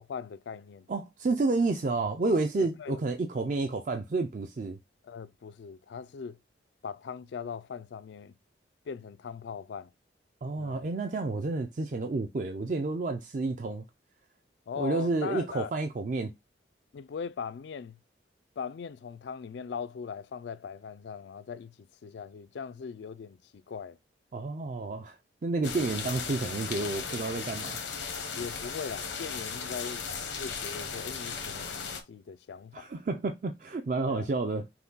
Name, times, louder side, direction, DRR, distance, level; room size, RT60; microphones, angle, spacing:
voice 1, 0.0-0.9 2.6-3.0 5.0-6.4 6.8-8.4 8.9-9.9 10.6-10.9 14.7-15.7 16.9-18.0 18.6-24.0 26.4-26.5 28.4-32.9 34.1-34.3, left 6 dB, 70° left, 0.3 m, -40 dB
voice 2, 0.9-4.8 10.4-13.8 14.8-16.3 24.3-25.2 25.4-27.8 32.7-34.6, right 3 dB, 45° right, 0.4 m, -30 dB
sound 1, 25.6-32.0, left 5 dB, 90° left, 1.0 m, -36 dB
5.8 x 2.2 x 3.9 m
head